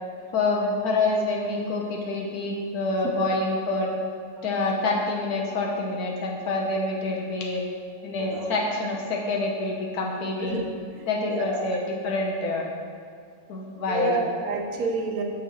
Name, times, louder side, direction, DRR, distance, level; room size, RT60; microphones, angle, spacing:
voice 1, 0.3-3.9 4.4-7.6 8.0-10.6 11.1-12.6 13.5-14.2, left 2 dB, 90° left, -2 dB, 1.4 m, -27 dB
voice 2, 10.9-11.7 13.9-15.2, right 4 dB, 75° right, 2 dB, 1.3 m, -30 dB
6.4 x 6.4 x 4.5 m, 2.3 s
omnidirectional pair, 1.6 m